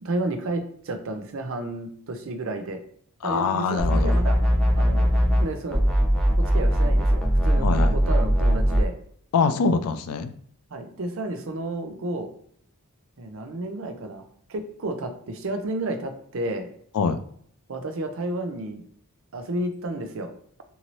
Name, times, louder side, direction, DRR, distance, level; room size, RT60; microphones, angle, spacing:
voice 1, 0.0-2.8 3.2-4.4 4.7-5.1 5.4-5.8 6.5-8.9 10.7-12.3 13.2-14.2 14.5-16.7 17.7-18.8 19.3-20.3, right 2 dB, 60° right, 6 dB, 0.5 m, -31 dB
voice 2, 3.2-4.1 7.6-7.9 9.3-10.3 16.9-17.2, left 5 dB, 80° left, 11 dB, 0.3 m, -24 dB
sound 1, 3.8-5.5 5.7-8.8, equal, 5° left, 0.5 m, -20 dB
2.7 x 2.7 x 3.0 m, 0.62 s
head